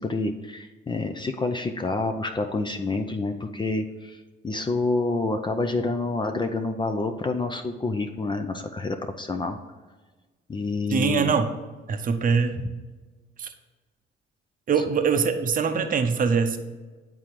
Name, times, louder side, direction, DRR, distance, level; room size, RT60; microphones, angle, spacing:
voice 1, 0.0-9.6 10.5-11.3, left 3 dB, 25° left, 6 dB, 0.5 m, -28 dB
voice 2, 10.9-11.5 11.9-12.7 13.4-13.5 14.7-16.6, right 6 dB, 45° right, 7 dB, 0.7 m, -23 dB
8.9 x 3.8 x 4.6 m, 1.3 s
cardioid pair, 90°, 20 cm